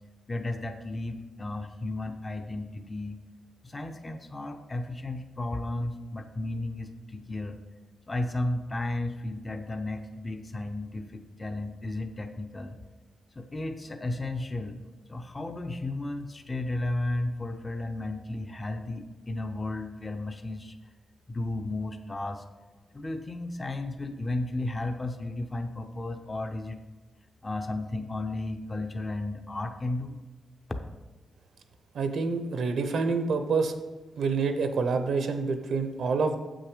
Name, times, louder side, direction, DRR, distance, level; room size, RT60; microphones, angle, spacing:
voice 1, 0.3-3.2 3.6-7.6 8.1-12.8 13.3-14.8 15.1-20.8 21.3-22.4 22.9-26.8 27.4-30.2, left 2 dB, 25° left, 6 dB, 0.6 m, -34 dB
voice 2, 31.9-33.7 34.2-36.4, right 4 dB, 75° right, 8 dB, 0.9 m, -27 dB
7.8 x 6.3 x 5.0 m, 1.3 s
cardioid pair, 100°, 0 cm